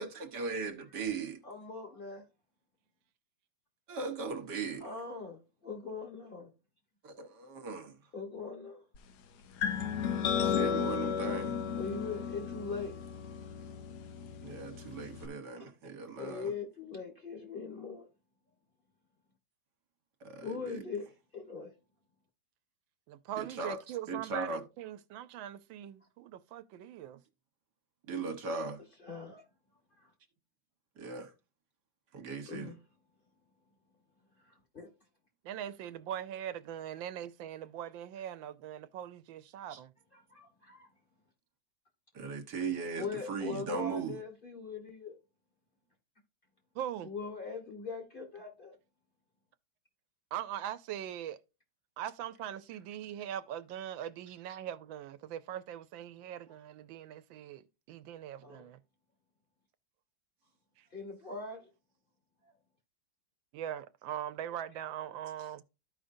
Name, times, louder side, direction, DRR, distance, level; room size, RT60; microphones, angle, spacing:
voice 1, 0.0-1.4 3.9-4.9 7.0-8.0 10.4-11.6 14.4-16.5 20.2-20.9 23.4-23.8 24.1-24.6 28.1-28.8 31.0-31.3 32.1-32.7 39.7-39.8 42.1-44.2, right 4 dB, 65° right, 1.6 m, -38 dB
voice 2, 1.4-2.2 4.8-6.5 8.1-8.8 11.8-12.9 15.6-15.7 16.2-18.1 20.4-21.7 29.0-29.4 30.0-30.1 32.5-32.8 34.7-34.9 40.3-40.9 42.9-45.2 47.0-48.7 58.4-58.7 60.9-61.7 62.4-62.5, left 4 dB, 30° left, 1.5 m, -41 dB
sound 1, 9.6-15.3, left 7 dB, 70° left, 1.1 m, -34 dB
voice 3, 23.1-27.2 35.4-39.9 46.7-47.1 50.3-51.4 52.0-58.8 60.8-60.9 63.5-65.6, right 10 dB, 85° right, 1.3 m, -41 dB
13.5 x 5.0 x 2.6 m
omnidirectional pair, 2.1 m